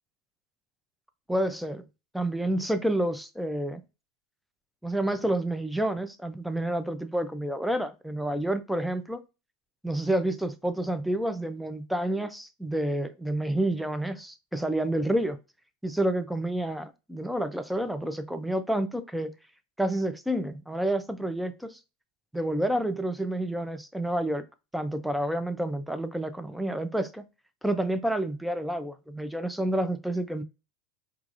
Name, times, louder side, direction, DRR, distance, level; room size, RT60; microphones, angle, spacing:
voice 1, 1.3-1.8 2.1-3.8 4.8-9.2 9.8-15.4 15.8-19.3 19.8-21.8 22.3-24.5 24.7-27.2 27.6-30.4, right 1 dB, ahead, 0.5 m, -29 dB
4.6 x 2.4 x 2.5 m
supercardioid pair, 115°, 0 cm